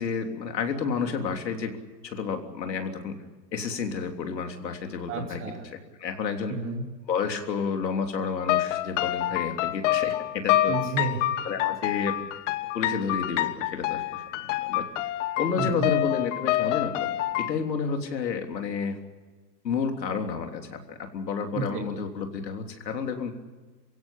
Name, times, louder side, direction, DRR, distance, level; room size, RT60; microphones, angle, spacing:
voice 1, 0.0-1.8 2.0-3.2 3.5-6.6 7.1-10.8 11.5-12.2 12.7-14.9 15.4-19.0 19.6-23.3, left 5 dB, 80° left, 4 dB, 3.4 m, -31 dB
voice 2, 5.1-5.6 6.5-6.9 10.7-11.3 15.6-15.9 21.5-21.8, right 4 dB, 25° right, 1 dB, 2.8 m, -31 dB
sound 1, 8.4-17.5, left 14 dB, 45° left, 1.1 m, -27 dB
27.5 x 16.5 x 8.7 m, 1.3 s
hypercardioid pair, 130°, 50 cm